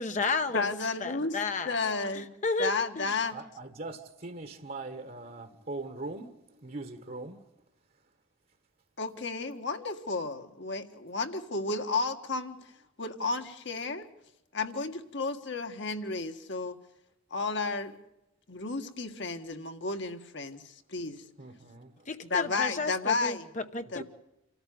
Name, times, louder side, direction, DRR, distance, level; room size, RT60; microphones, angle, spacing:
voice 1, 0.0-0.7 1.0-1.8 2.1-3.2 22.0-24.0, left 3 dB, 35° left, 1.0 m, -32 dB
voice 2, 0.5-1.3 1.7-2.3 2.6-3.4 9.0-12.6 13.0-14.1 14.5-16.8 17.3-18.0 18.5-21.2 22.3-23.5 23.9-24.0, left 3 dB, 55° left, 1.8 m, -32 dB
voice 3, 3.3-7.4 21.4-22.1 24.0-24.1, right 2 dB, 45° right, 1.5 m, -41 dB
27.5 x 14.0 x 9.4 m
head